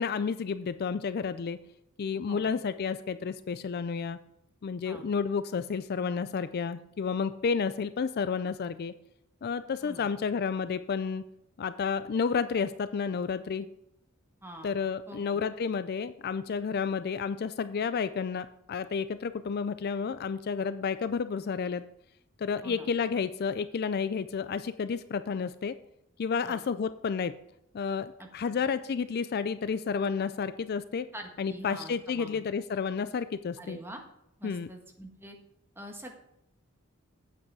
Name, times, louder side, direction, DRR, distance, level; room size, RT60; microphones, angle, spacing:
voice 1, 0.0-1.6 2.0-4.2 4.6-8.9 9.4-11.2 11.6-13.7 14.6-21.8 22.4-25.8 26.2-27.4 27.7-31.1 31.4-33.8 34.4-34.7, left 6 dB, 50° left, 13 dB, 0.4 m, -31 dB
voice 2, 15.1-15.4 22.6-22.9 26.4-26.6 28.2-28.3 31.1-32.4 33.6-34.0 34.4-35.4 35.7-36.1, right 1 dB, 10° right, 3 dB, 1.5 m, -45 dB
8.8 x 7.9 x 4.8 m, 0.80 s
head